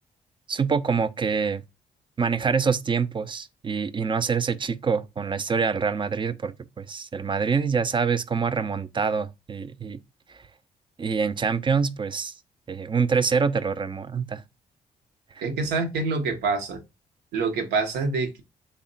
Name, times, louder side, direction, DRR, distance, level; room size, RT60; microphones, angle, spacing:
voice 1, 0.5-1.6 2.2-10.0 11.0-12.3 12.7-14.4, right 5 dB, 30° right, 0.4 m, -25 dB
voice 2, 15.4-16.8 17.3-18.4, right 4 dB, 85° right, 0.7 m, -26 dB
3.5 x 2.1 x 3.7 m
supercardioid pair, 60°, 16 cm